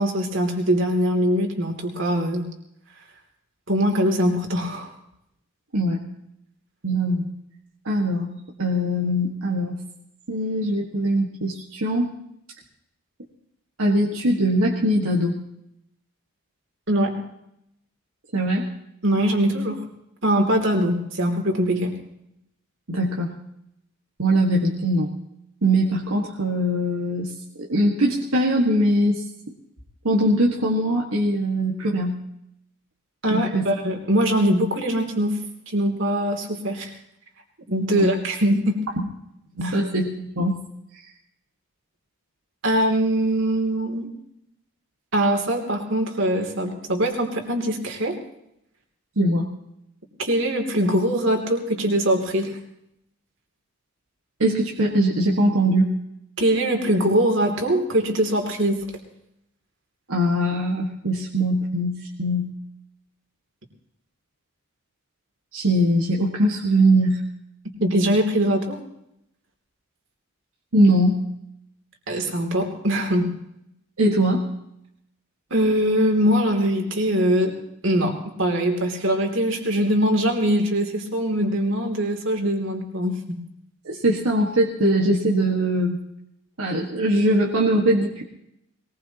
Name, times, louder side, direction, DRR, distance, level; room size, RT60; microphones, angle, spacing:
voice 1, 0.0-2.4 3.7-4.9 16.9-17.2 19.0-19.8 20.2-21.9 33.2-35.4 35.7-36.9 37.7-38.8 39.6-39.8 42.6-44.1 45.1-48.2 50.2-52.6 56.4-58.8 67.8-68.8 72.1-73.3 75.5-77.5 77.8-83.4, equal, 60° right, 2 dB, 3.0 m, -22 dB
voice 2, 6.8-7.2 7.9-8.3 8.6-9.8 10.3-12.1 13.8-15.4 18.3-18.7 22.9-23.3 24.2-25.1 25.6-27.3 27.6-29.2 30.0-32.2 33.3-33.7 37.9-38.1 39.0-39.1 39.6-40.6 49.2-49.5 54.4-55.9 60.1-62.5 65.5-67.2 70.7-71.2 74.0-74.5 83.9-86.0 86.6-88.2, right 1 dB, 80° right, -2 dB, 1.8 m, -21 dB
21.5 x 20.0 x 3.0 m, 0.79 s
head